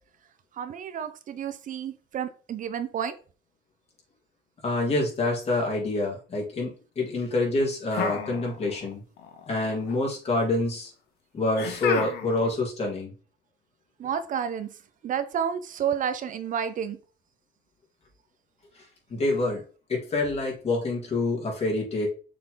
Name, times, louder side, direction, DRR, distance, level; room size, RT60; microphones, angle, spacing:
voice 1, 0.6-3.2 14.0-14.7 15.0-17.0, right 8 dB, 50° right, 0.6 m, -30 dB
voice 2, 4.6-9.0 9.5-10.9 11.3-13.1 19.1-19.6 19.9-22.1, left 2 dB, 35° left, 2.8 m, -27 dB
sound 1, 7.9-8.9 9.2-9.9 11.6-12.5, left 6 dB, 80° left, 1.3 m, -31 dB
6.7 x 3.7 x 3.9 m
cardioid pair, 110°, 17 cm